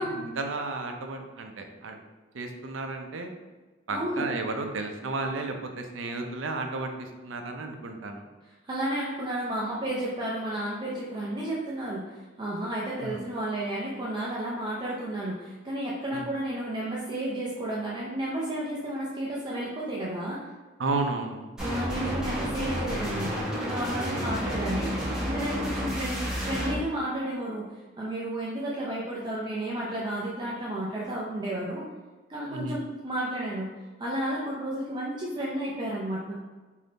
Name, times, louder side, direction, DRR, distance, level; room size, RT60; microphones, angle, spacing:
voice 1, 0.0-2.0 2.3-3.3 3.9-8.3 13.0-13.2 16.1-16.3 20.8-21.5 24.0-24.2 32.5-32.8, right 3 dB, 80° right, 4 dB, 0.5 m, -33 dB
voice 2, 3.9-4.3 8.6-20.4 21.6-27.7 28.0-31.8 32.3-33.7 34.0-36.3, right 1 dB, 25° right, -5 dB, 0.4 m, -32 dB
sound 1, 21.6-26.8, equal, 5° right, 1.0 m, -31 dB
3.5 x 2.7 x 3.9 m, 1.2 s
head